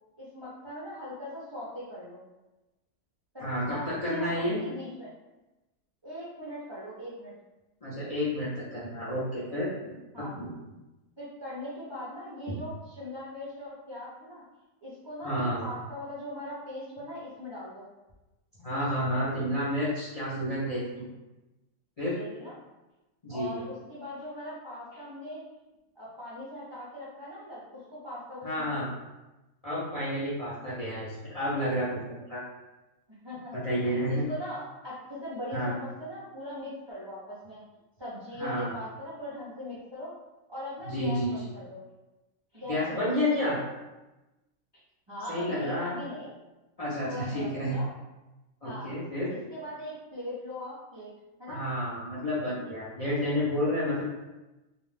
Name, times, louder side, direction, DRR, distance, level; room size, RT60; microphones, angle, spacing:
voice 1, 0.2-2.2 3.3-4.3 4.6-5.1 6.0-7.3 10.1-10.3 11.2-14.4 14.8-17.8 22.1-22.5 23.3-25.5 26.0-28.9 33.2-34.0 34.3-37.6 38.0-40.1 40.5-41.8 42.5-43.3 45.1-46.3 47.1-47.9 48.6-48.9 49.3-51.1 51.4-51.6, left 1 dB, 40° right, -9 dB, 0.4 m, -40 dB
voice 2, 3.4-4.6 7.8-10.5 12.5-12.6 15.2-15.7 18.6-21.0 22.0-22.2 23.2-23.6 28.4-28.9 29.6-32.0 32.3-32.4 33.6-34.2 35.5-35.7 38.4-38.7 40.8-41.3 42.7-43.6 45.3-46.0 46.8-47.8 48.6-49.3 51.5-54.0, equal, 50° left, -9 dB, 0.4 m, -30 dB
2.4 x 2.3 x 3.2 m, 1.0 s
omnidirectional pair, 1.4 m